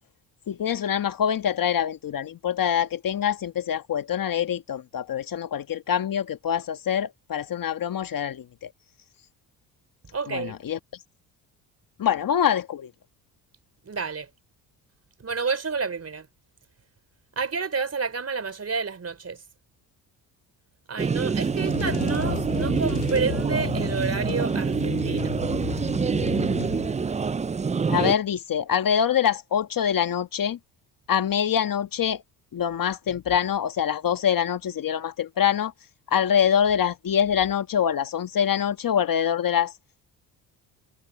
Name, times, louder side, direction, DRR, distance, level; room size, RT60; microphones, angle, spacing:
voice 1, 0.5-8.7 10.3-10.8 12.0-12.9 27.9-30.6 31.1-32.2 32.5-35.7 36.1-39.7, left 8 dB, 50° left, 1.6 m, -25 dB
voice 2, 10.1-10.6 13.9-14.3 15.2-16.3 17.4-19.4 20.9-25.4, right 5 dB, 35° right, 4.0 m, -30 dB
sound 1, 21.0-28.2, right 5 dB, 15° right, 0.5 m, -26 dB
sound 2, 21.3-27.3, left 21 dB, 70° left, 0.7 m, -34 dB
supercardioid pair, 65°, 43 cm